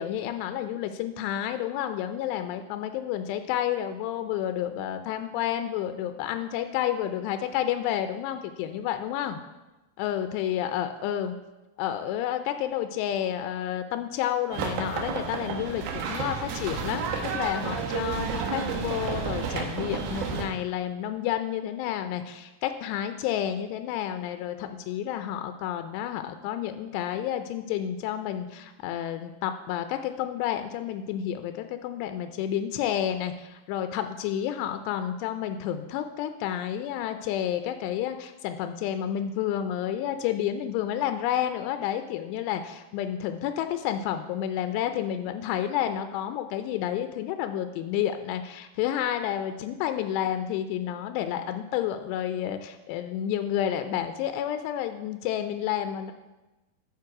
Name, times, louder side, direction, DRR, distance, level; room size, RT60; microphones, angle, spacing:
voice 1, 0.0-9.4 10.0-11.3 11.8-17.0 17.3-56.1, left 10 dB, 90° left, 8 dB, 2.7 m, -30 dB
sound 1, 14.5-20.5, right 6 dB, 75° right, 2.8 m, -31 dB
11.5 x 4.5 x 4.8 m, 1.1 s
omnidirectional pair, 4.8 m